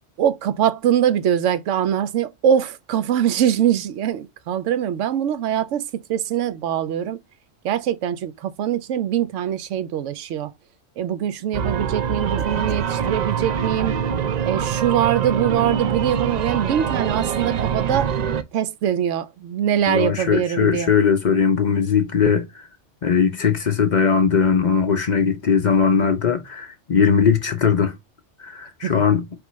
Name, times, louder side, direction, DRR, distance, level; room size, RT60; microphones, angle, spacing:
voice 1, 0.2-7.2 7.6-10.5 11.0-14.0 14.4-18.1 18.5-20.9 28.8-28.9, right 10 dB, 90° right, 0.9 m, -23 dB
sound 1, 11.5-18.4, right 7 dB, 65° right, 0.4 m, -24 dB
voice 2, 19.9-22.7 23.0-27.9 28.4-29.2, left 6 dB, 45° left, 0.6 m, -19 dB
4.8 x 3.3 x 3.1 m
omnidirectional pair, 1.2 m